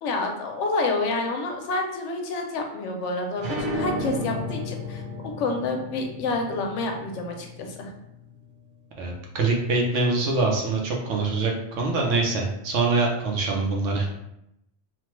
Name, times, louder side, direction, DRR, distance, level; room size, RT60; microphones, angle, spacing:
voice 1, 0.0-5.0 5.4-7.9, left 3 dB, 75° left, 3 dB, 0.9 m, -28 dB
sound 1, 3.4-8.6, left 1 dB, 50° right, 0.8 m, -33 dB
voice 2, 9.0-14.1, right 3 dB, 75° right, 0 dB, 1.0 m, -24 dB
3.0 x 2.2 x 3.0 m, 0.82 s
omnidirectional pair, 1.3 m